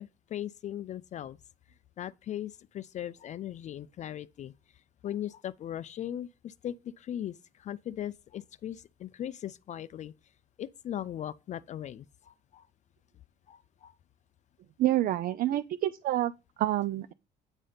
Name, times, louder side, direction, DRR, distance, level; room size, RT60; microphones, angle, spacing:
voice 1, 0.0-1.4 2.0-4.5 5.0-10.1 10.6-12.7 13.5-13.9, left 11 dB, 45° left, 0.4 m, -39 dB
voice 2, 14.8-16.3 16.6-17.1, right 14 dB, 60° right, 0.4 m, -27 dB
8.9 x 3.3 x 5.5 m
cardioid pair, 110°, 17 cm